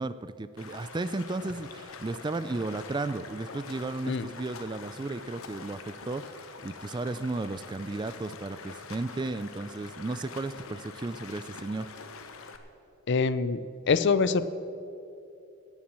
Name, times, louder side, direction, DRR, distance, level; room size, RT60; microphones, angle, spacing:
voice 1, 0.0-11.9, right 2 dB, 20° right, 14 dB, 0.3 m, -34 dB
Stream, 0.6-12.6, left 4 dB, 70° left, 1.0 m, -45 dB
voice 2, 13.1-13.6 13.9-14.5, left 5 dB, 50° left, 14 dB, 0.5 m, -24 dB
17.0 x 7.3 x 7.5 m, 2.8 s
head